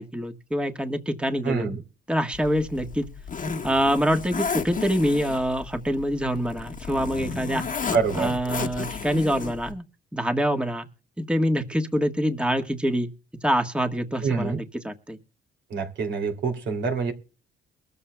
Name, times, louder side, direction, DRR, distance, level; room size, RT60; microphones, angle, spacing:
voice 1, 0.0-1.7 2.1-3.0 3.6-9.8 10.1-10.9 11.2-13.1 13.4-15.2, equal, 5° right, 1.4 m, -25 dB
voice 2, 1.4-1.8 7.9-8.3 14.2-14.6 15.7-17.1, right 5 dB, 65° right, 2.8 m, -26 dB
Zipper (clothing), 2.3-9.7, left 5 dB, 40° left, 1.4 m, -33 dB
22.5 x 14.0 x 2.2 m
cardioid pair, 90°, 20 cm